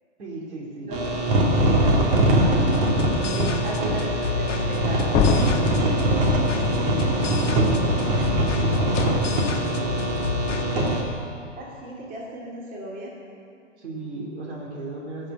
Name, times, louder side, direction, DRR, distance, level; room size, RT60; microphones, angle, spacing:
voice 1, 0.2-0.9 1.3-1.5 2.8-3.8 5.4-5.9 7.4-10.3 13.8-15.3, right 2 dB, 65° right, -2 dB, 3.2 m, -37 dB
sound 1, 0.9-11.0, right 1 dB, 45° right, 2.7 m, -22 dB
voice 2, 1.7-5.0 5.3-6.2 11.6-13.1, right 1 dB, 20° right, -3 dB, 2.3 m, -37 dB
sound 2, 2.6-10.7, left 3 dB, 80° left, 1.2 m, -31 dB
sound 3, 5.1-6.0 8.9-9.2, left 8 dB, 20° left, 0.5 m, -24 dB
15.5 x 7.0 x 6.7 m, 2.4 s
hypercardioid pair, 110°, 37 cm